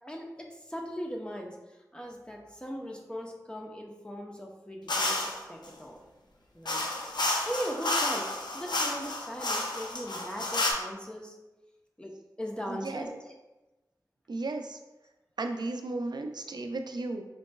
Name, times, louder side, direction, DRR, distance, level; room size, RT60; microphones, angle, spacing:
voice 1, 0.0-1.6 1.9-6.0 6.5-6.8 7.2-11.3 12.0-13.3, equal, 15° left, 0 dB, 0.7 m, -39 dB
sound 1, 4.9-5.4 6.7-10.7, left 2 dB, 90° left, 0.6 m, -30 dB
voice 2, 12.7-13.1 14.3-14.8 15.4-17.3, right 2 dB, 80° right, 5 dB, 0.4 m, -34 dB
4.5 x 3.8 x 2.3 m, 1.1 s
cardioid pair, 40°, 7 cm